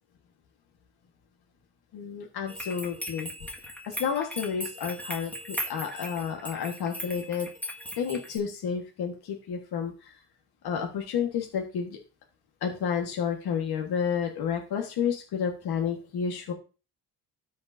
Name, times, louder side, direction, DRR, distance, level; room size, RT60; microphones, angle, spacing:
voice 1, 1.9-3.3 3.9-7.5 8.0-10.1 10.6-12.0 12.6-16.5, left 7 dB, 70° left, 2 dB, 1.6 m, -31 dB
sound 1, 2.5-8.4, equal, 5° left, 1.8 m, -38 dB
13.0 x 5.2 x 2.7 m, 0.34 s
cardioid pair, 95°, 40 cm